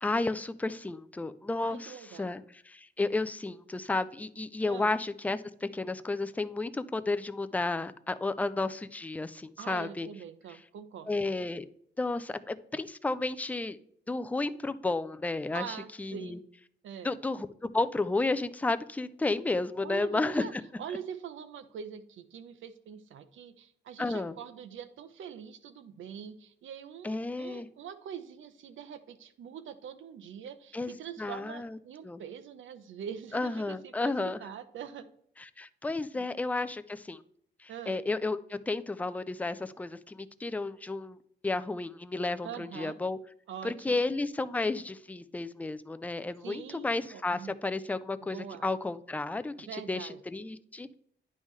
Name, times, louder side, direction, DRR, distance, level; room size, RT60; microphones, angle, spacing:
voice 1, 0.0-10.1 11.1-11.7 12.0-13.8 14.1-16.4 17.0-20.4 24.0-24.4 27.0-27.7 30.7-31.8 32.0-32.2 33.3-34.4 35.4-37.2 37.6-41.2 41.4-43.2 43.6-50.9, left 3 dB, 10° left, 12 dB, 0.3 m, -32 dB
voice 2, 1.6-2.3 4.7-4.9 9.6-11.3 15.5-16.4 16.8-17.2 19.8-20.5 20.8-34.1 34.4-35.1 36.1-36.2 37.7-38.0 42.4-42.9 43.5-44.0 46.4-47.6 48.2-48.6 49.7-50.2, right 8 dB, 80° right, 12 dB, 0.8 m, -43 dB
9.6 x 5.4 x 3.1 m, 0.67 s
wide cardioid pair, 150°, 20 cm